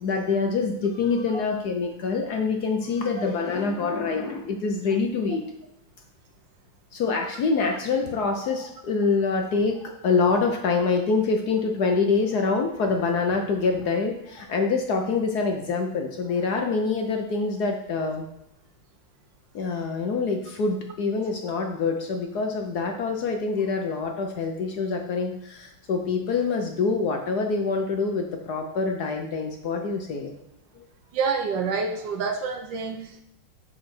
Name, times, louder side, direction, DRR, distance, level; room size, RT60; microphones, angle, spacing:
voice 1, 0.0-5.4 6.9-18.3 19.5-30.4 30.7-30.8, left 4 dB, 60° left, 3 dB, 1.1 m, -25 dB
voice 2, 31.1-33.2, right 5 dB, 70° right, 6 dB, 1.3 m, -27 dB
7.7 x 4.7 x 5.9 m, 0.80 s
omnidirectional pair, 2.3 m